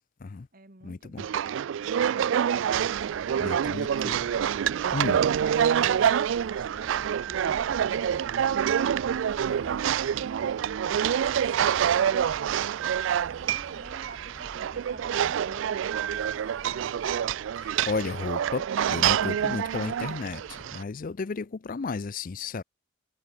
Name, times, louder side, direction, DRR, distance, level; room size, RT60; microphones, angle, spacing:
voice 1, 0.0-0.5 0.8-1.2 3.4-4.2 4.9-5.2 17.5-22.6, left 4 dB, 45° left, 0.5 m, -33 dB
voice 2, 0.5-1.5 3.2-4.0 5.4-8.6 9.2-9.8 10.1-12.1 13.5-17.0, right 2 dB, 45° right, 2.1 m, -50 dB
sound 1, 1.2-20.8, right 9 dB, 70° right, 0.3 m, -27 dB
sound 2, 2.8-20.8, equal, 15° left, 2.0 m, -50 dB
head